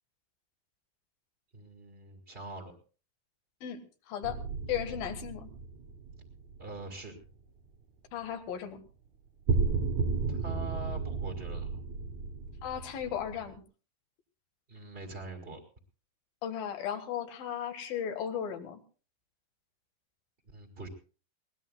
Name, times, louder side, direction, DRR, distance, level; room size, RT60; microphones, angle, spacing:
voice 1, 1.5-2.7 6.6-7.1 10.3-11.8 14.7-15.6 20.4-20.9, right 2 dB, 25° right, 3 dB, 1.5 m, -43 dB
voice 2, 4.1-4.4 4.7-5.5 8.1-8.8 12.6-13.6 16.4-18.8, left 9 dB, 85° left, 6 dB, 3.3 m, -35 dB
sound 1, 4.2-7.0 9.5-13.6, right 5 dB, 60° right, 2.5 m, -33 dB
22.0 x 18.5 x 2.2 m, 0.37 s
omnidirectional pair, 4.0 m